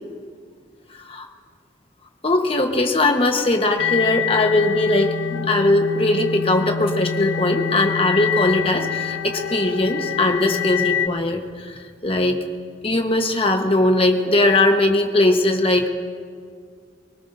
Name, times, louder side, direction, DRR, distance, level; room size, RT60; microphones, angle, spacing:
voice 1, 2.2-12.4 12.8-15.9, left 2 dB, 30° left, 4 dB, 1.1 m, -20 dB
sound 1, 3.8-11.1, left 8 dB, 75° left, 0.3 m, -26 dB
24.0 x 18.5 x 2.7 m, 2.1 s
head